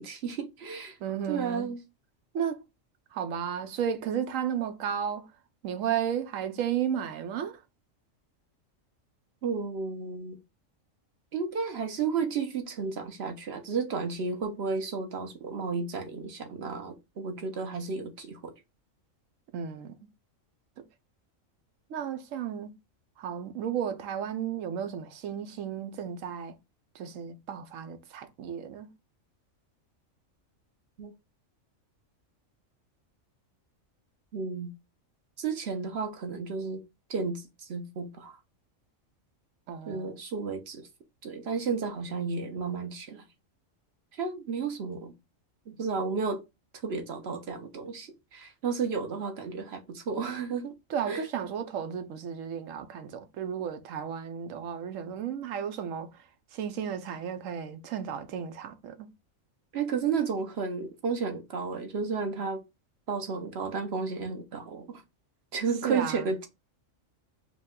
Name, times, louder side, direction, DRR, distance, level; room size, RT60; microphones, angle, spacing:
voice 1, 0.0-1.0 1.3-1.8 9.4-10.4 11.3-18.5 31.0-31.1 34.3-34.7 35.4-36.8 37.1-38.3 39.9-40.9 41.2-43.2 44.2-45.1 45.7-46.4 46.8-50.7 51.1-51.2 59.7-62.6 63.1-65.0 65.5-66.5, right 5 dB, 55° right, 1.0 m, -32 dB
voice 2, 1.0-1.7 2.3-2.6 3.1-5.3 5.6-7.6 19.5-20.0 20.8-20.9 21.9-22.7 23.2-26.6 26.9-28.9 39.7-40.2 50.9-56.2 56.5-59.1 65.8-66.3, right 8 dB, 80° right, 1.0 m, -33 dB
5.0 x 2.2 x 3.7 m
omnidirectional pair, 1.4 m